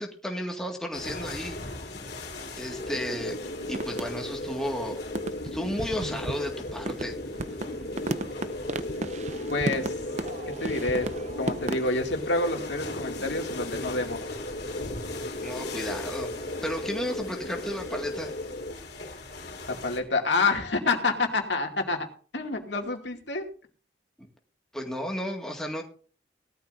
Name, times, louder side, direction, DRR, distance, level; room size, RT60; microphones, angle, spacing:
voice 1, 0.0-1.6 2.6-3.4 3.7-5.0 5.5-7.1 15.4-16.3 16.6-18.3 24.2-24.3 24.7-25.8, equal, 5° left, 1 dB, 1.9 m, -33 dB
sound 1, 0.9-20.0, left 2 dB, 60° left, 3.3 m, -42 dB
sound 2, 2.8-18.7, left 1 dB, 45° left, 1.1 m, -36 dB
sound 3, 3.7-4.5 4.8-4.9 5.1-11.9, right 2 dB, 40° right, 0.6 m, -35 dB
voice 2, 9.5-9.9 10.6-14.2 19.7-22.0 22.3-23.4, left 3 dB, 80° left, 3 dB, 2.4 m, -28 dB
18.5 x 13.0 x 2.6 m, 0.41 s
head